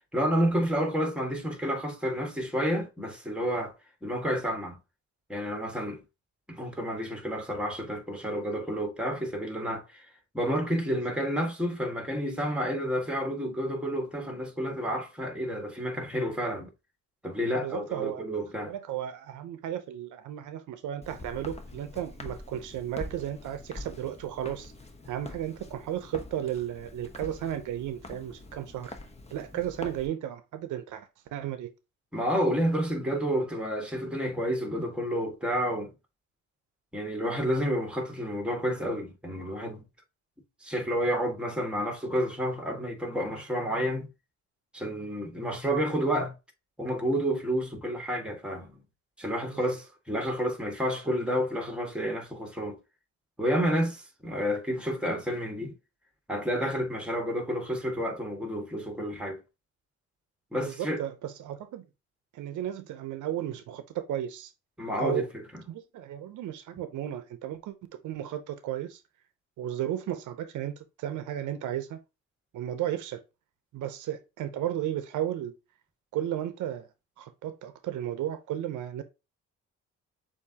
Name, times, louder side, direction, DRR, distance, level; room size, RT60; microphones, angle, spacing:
voice 1, 0.1-3.7 4.0-4.8 5.3-6.0 6.5-10.1 10.3-16.7 17.2-18.7 32.1-35.9 36.9-39.8 40.6-44.1 44.7-46.4 46.8-48.8 49.2-52.8 53.4-55.8 56.3-59.4 60.5-61.0 64.8-65.2, equal, 5° right, 1.6 m, -30 dB
voice 2, 17.6-18.3 18.7-24.7 25.1-29.0 29.3-31.7 60.6-61.8 62.3-64.5 65.0-65.3 65.7-67.7 68.0-69.0 69.6-72.0 72.5-73.2 73.7-75.5 76.1-76.9 77.2-79.0, right 11 dB, 80° right, 0.7 m, -34 dB
Walk footsteps, 21.0-30.1, left 2 dB, 20° left, 0.8 m, -45 dB
6.8 x 2.7 x 2.8 m
cardioid pair, 90°, 30 cm